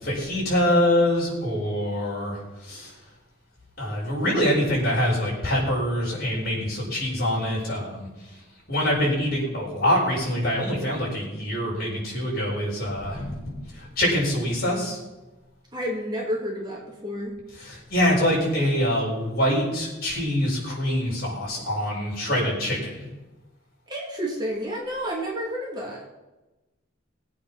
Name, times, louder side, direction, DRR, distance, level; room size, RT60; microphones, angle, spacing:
voice 1, 0.0-2.9 3.8-8.1 8.7-15.0 17.6-23.1, equal, 50° left, -4 dB, 6.2 m, -25 dB
voice 2, 15.7-17.4 23.9-26.1, equal, 20° right, -2 dB, 2.8 m, -30 dB
20.5 x 8.5 x 5.9 m, 1.1 s
head